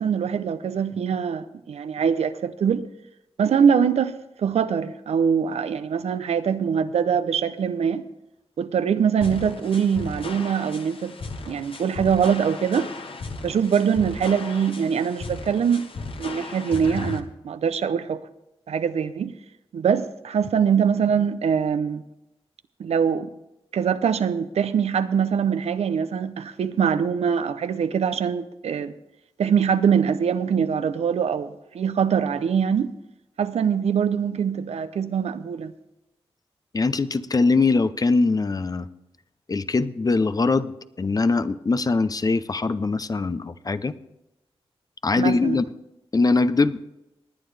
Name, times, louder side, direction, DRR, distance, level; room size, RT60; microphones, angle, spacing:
voice 1, 0.0-2.9 3.4-4.1 4.4-8.0 8.6-11.1 11.5-12.9 13.4-15.9 16.2-18.2 18.7-19.3 19.7-22.0 22.8-23.3 23.7-28.9 29.4-32.9 33.4-35.7 45.2-45.6, right 7 dB, 85° right, 0.6 m, -23 dB
sound 1, 9.2-17.2, left 3 dB, 60° left, 1.1 m, -36 dB
voice 2, 36.7-38.9 39.5-40.7 41.0-43.9 45.0-45.6 46.1-46.8, left 3 dB, 35° left, 0.6 m, -22 dB
20.0 x 9.4 x 3.3 m
cardioid pair, 65°, 11 cm